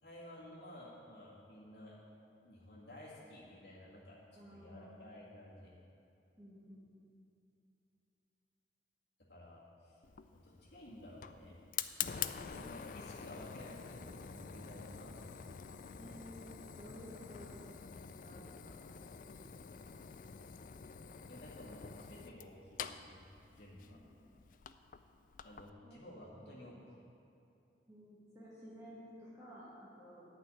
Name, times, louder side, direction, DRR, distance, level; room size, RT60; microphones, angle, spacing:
voice 1, 0.0-2.0 2.4-5.7 9.3-10.0 10.3-11.6 12.5-15.4 21.3-23.2 23.5-24.0 25.4-27.1, left 1 dB, 65° left, -6 dB, 2.1 m, -53 dB
voice 2, 4.4-5.0 6.4-7.0 15.9-17.6 17.9-19.6 25.8-26.0 26.4-26.6 27.9-30.3, equal, 20° right, -10 dB, 2.1 m, -54 dB
Fire, 10.0-25.7, left 8 dB, 45° left, 0.3 m, -47 dB
10.5 x 5.9 x 8.5 m, 2.8 s
head